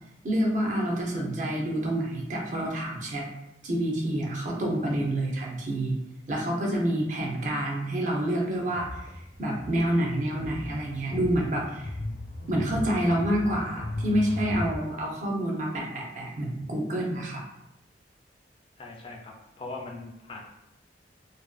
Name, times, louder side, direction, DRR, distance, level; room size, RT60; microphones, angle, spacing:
voice 1, 0.2-3.3 3.6-6.0 6.3-9.0 9.4-11.9 12.5-17.4, right 1 dB, 45° right, -1 dB, 0.5 m, -28 dB
sound 1, 8.6-14.8, left 1 dB, 85° left, 0.8 m, -37 dB
voice 2, 18.8-20.4, left 3 dB, 30° left, 0 dB, 0.3 m, -40 dB
2.5 x 2.2 x 2.3 m, 0.85 s
head